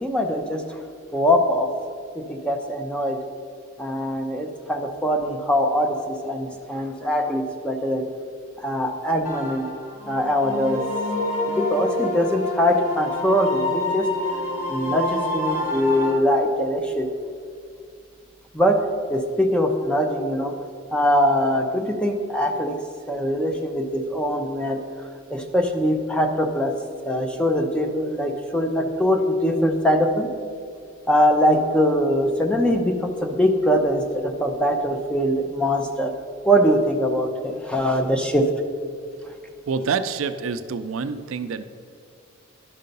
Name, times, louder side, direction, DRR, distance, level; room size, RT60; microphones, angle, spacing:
voice 1, 0.0-0.6 1.1-1.7 2.2-3.2 3.8-8.0 8.6-9.7 10.1-10.8 11.5-14.1 14.7-17.1 18.5-18.8 19.1-20.5 20.9-22.8 23.1-24.8 25.3-26.7 27.1-30.3 31.1-36.1 36.4-38.5, equal, 5° left, 3 dB, 0.6 m, -22 dB
sound 1, 9.2-16.1, left 2 dB, 35° left, 1.9 m, -28 dB
voice 2, 39.7-41.6, right 5 dB, 75° right, 10 dB, 0.4 m, -27 dB
11.5 x 5.6 x 5.3 m, 2.2 s
head